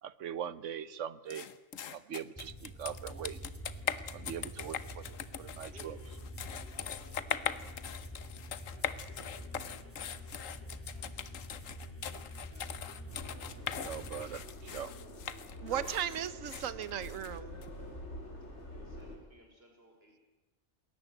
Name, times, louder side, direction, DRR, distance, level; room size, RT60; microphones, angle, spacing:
voice 1, 0.0-1.5 1.9-3.4 4.1-6.0 13.8-14.9 15.7-15.9, right 9 dB, 70° right, 17 dB, 1.2 m, -41 dB
sound 1, 1.3-17.7, left 8 dB, 80° left, 1.4 m, -41 dB
sound 2, 2.4-14.4, left 1 dB, 10° left, 2.5 m, -47 dB
voice 2, 5.6-11.8 12.1-13.2 18.4-20.2, right 1 dB, 50° right, 2 dB, 5.6 m, -63 dB
Subway metro underground, 13.1-19.2, left 1 dB, 60° left, 4.3 m, -47 dB
voice 3, 15.6-17.6, right 10 dB, 85° right, 16 dB, 1.3 m, -36 dB
20.5 x 18.5 x 9.3 m, 1.1 s
omnidirectional pair, 1.3 m